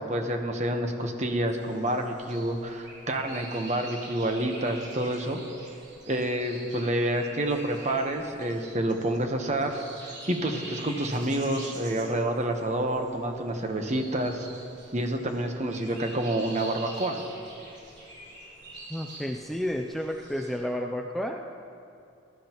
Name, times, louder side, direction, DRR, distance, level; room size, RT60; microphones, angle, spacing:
voice 1, 0.0-5.4 6.1-9.8 10.3-14.5 14.9-17.2, right 1 dB, 35° right, 4 dB, 1.0 m, -28 dB
sound 1, 1.5-20.5, right 1 dB, 55° right, 3.6 m, -45 dB
voice 2, 18.9-21.4, equal, ahead, 1 dB, 0.4 m, -31 dB
20.0 x 12.5 x 3.0 m, 2.6 s
head